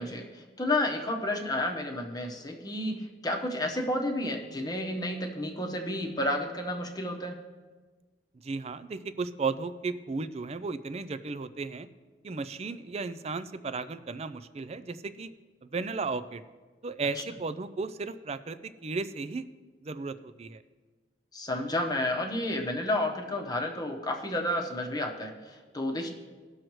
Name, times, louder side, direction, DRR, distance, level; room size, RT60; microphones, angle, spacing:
voice 1, 0.0-7.4 21.3-26.1, left 1 dB, 20° left, 2 dB, 0.9 m, -31 dB
voice 2, 8.4-11.9 12.2-15.3 15.6-16.4 16.8-19.5 19.8-20.6, right 4 dB, 35° right, 13 dB, 0.4 m, -35 dB
18.5 x 6.4 x 3.1 m, 1.3 s
head